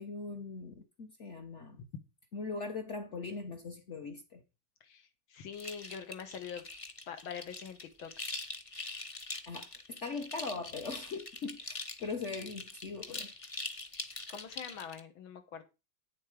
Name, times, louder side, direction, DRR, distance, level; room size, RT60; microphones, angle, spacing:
voice 1, 0.0-1.8 2.3-4.4 9.5-13.3, left 4 dB, 45° left, 1.1 m, -40 dB
voice 2, 4.8-6.7 7.1-8.1 14.3-15.6, left 7 dB, 90° left, 2.1 m, -44 dB
sound 1, 5.5-15.0, left 2 dB, 25° left, 0.7 m, -43 dB
9.3 x 7.4 x 4.9 m
omnidirectional pair, 2.1 m